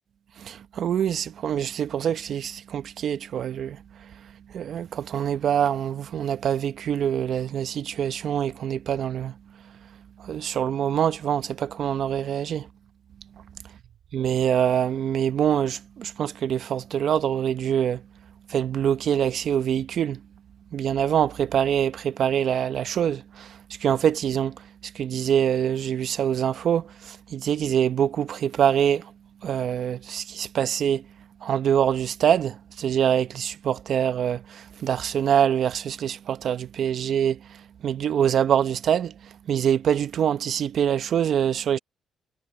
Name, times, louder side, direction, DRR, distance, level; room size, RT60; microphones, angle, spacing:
voice 1, 0.4-4.1 4.5-9.4 10.2-12.7 14.1-18.0 18.5-20.2 20.7-29.1 29.4-31.0 31.4-41.8, right 9 dB, 65° right, 1.0 m, -25 dB
cardioid pair, 90°, 0 cm